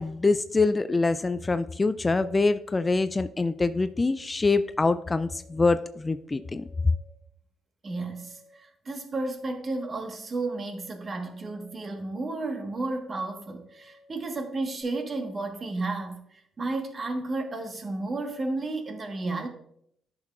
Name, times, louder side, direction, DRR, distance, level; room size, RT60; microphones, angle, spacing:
voice 1, 0.0-6.7, left 3 dB, 25° left, 13 dB, 0.3 m, -25 dB
sound 1, 5.0-5.7 6.3-7.1 7.9-8.5 9.2-9.9 10.5-14.8, left 2 dB, 15° right, 2.5 m, -57 dB
voice 2, 7.8-19.5, right 2 dB, 40° right, 4 dB, 1.4 m, -32 dB
10.5 x 6.4 x 2.4 m, 0.71 s
cardioid pair, 90°, 0 cm